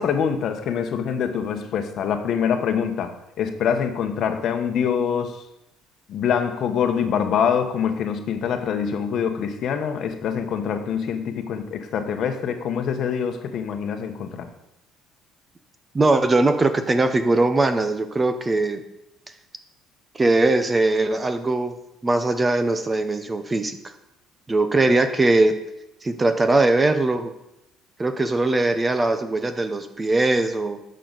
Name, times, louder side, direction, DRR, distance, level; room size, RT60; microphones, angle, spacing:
voice 1, 0.0-3.1 3.4-5.3 6.1-14.5, left 7 dB, 55° left, 7 dB, 1.0 m, -25 dB
voice 2, 15.9-18.8 20.1-21.7 22.0-23.9 24.5-25.5 26.0-27.3 28.0-30.8, right 2 dB, 20° right, 9 dB, 0.8 m, -20 dB
10.5 x 6.6 x 4.0 m, 0.88 s
cardioid pair, 115°, 0 cm